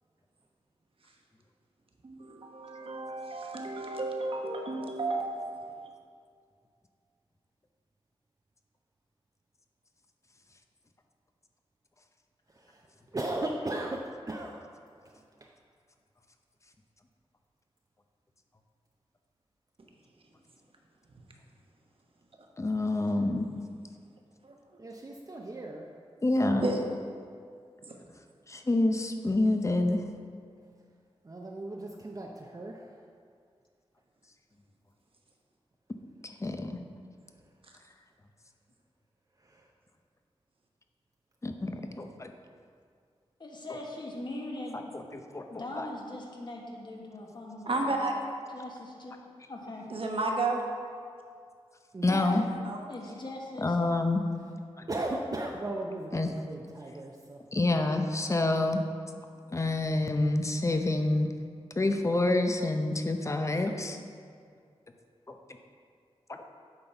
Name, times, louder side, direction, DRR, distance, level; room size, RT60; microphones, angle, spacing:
voice 1, 2.0-5.9 24.4-24.5 26.6-26.8 27.9-28.0 47.7-48.1 49.9-50.6 52.6-52.8, right 2 dB, 60° right, 1 dB, 1.1 m, -32 dB
voice 2, 12.6-12.9 13.1-14.6 15.0-15.5 24.8-25.9 31.2-33.0 39.4-39.7 51.9-52.1 54.9-57.4, right 2 dB, 35° right, -1 dB, 0.6 m, -37 dB
voice 3, 22.6-23.5 26.2-26.7 28.5-30.0 36.2-36.8 41.4-42.3 44.9-45.8 52.0-52.4 53.6-54.2 56.1-56.3 57.5-58.8 59.5-61.3 61.8-64.0 65.3-65.4 66.3-66.4, left 2 dB, 30° left, 5 dB, 0.7 m, -27 dB
voice 4, 43.4-44.8 45.5-48.0 48.5-49.2 49.5-49.9 52.1-52.5 52.9-53.8, left 1 dB, 45° left, -1 dB, 1.4 m, -40 dB
8.7 x 4.0 x 5.9 m, 2.2 s
wide cardioid pair, 75°, 11 cm